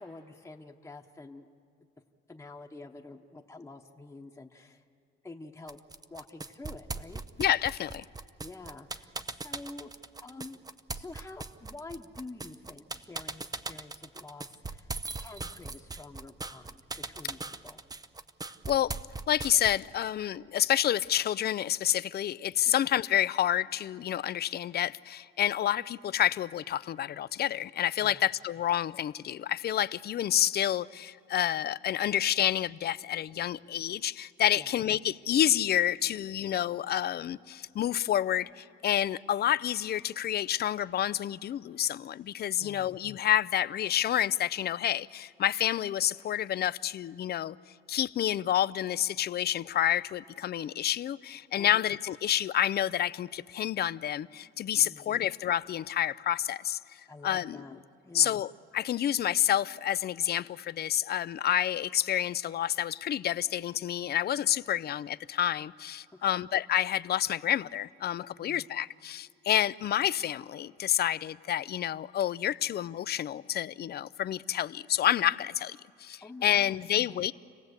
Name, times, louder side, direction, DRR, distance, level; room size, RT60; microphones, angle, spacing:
voice 1, 0.0-1.5 2.3-4.8 5.2-5.8 6.1-7.2 8.4-9.9 10.2-10.6 10.9-14.9 15.2-16.8 17.1-17.8 22.7-22.9 28.0-28.2 34.6-34.7 42.6-43.0 51.6-51.9 54.7-55.2 57.1-58.4 66.1-66.4 68.4-68.6 76.2-76.8 77.1-77.2, left 2 dB, 15° left, 1.1 m, -47 dB
sound 1, 5.7-19.9, right 3 dB, 20° right, 0.6 m, -40 dB
voice 2, 7.4-8.0 18.7-19.0 19.3-47.6 47.9-57.6 58.1-77.3, left 11 dB, 55° left, 0.5 m, -29 dB
29.0 x 18.0 x 8.2 m
cardioid pair, 90°, 20 cm